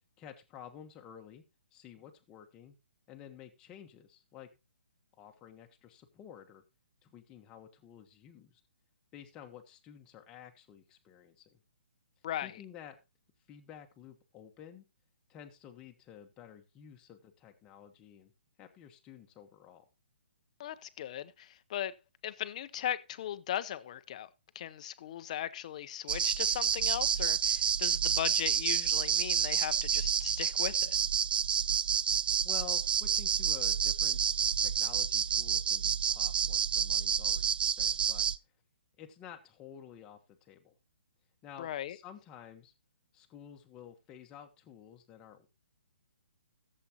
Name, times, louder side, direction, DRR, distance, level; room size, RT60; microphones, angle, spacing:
voice 1, 0.2-1.4 1.7-2.8 3.1-4.5 5.2-6.6 7.0-8.6 9.1-11.6 12.4-13.0 13.5-14.8 15.3-18.3 18.6-19.8 32.4-34.2 34.6-38.3 39.0-40.7 41.4-42.7 43.1-45.5, left 9 dB, 15° left, 1.2 m, -51 dB
voice 2, 20.6-22.0 22.2-24.3 24.5-31.0 41.6-42.0, left 11 dB, 35° left, 0.7 m, -38 dB
sound 1, 26.1-38.4, right 8 dB, 55° right, 0.4 m, -29 dB
15.5 x 7.6 x 2.9 m
hypercardioid pair, 165°, 6 cm